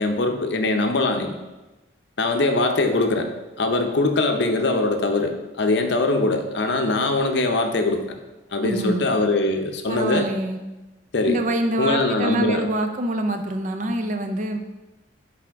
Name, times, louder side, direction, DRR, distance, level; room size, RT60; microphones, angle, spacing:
voice 1, 0.0-1.3 2.2-3.3 3.6-8.0 8.5-10.3 11.1-11.4 11.8-12.7, left 2 dB, 60° left, 5 dB, 0.7 m, -22 dB
voice 2, 8.6-9.1 9.9-10.6 11.2-14.6, right 1 dB, 40° right, 6 dB, 0.5 m, -25 dB
9.6 x 3.5 x 3.5 m, 1.1 s
head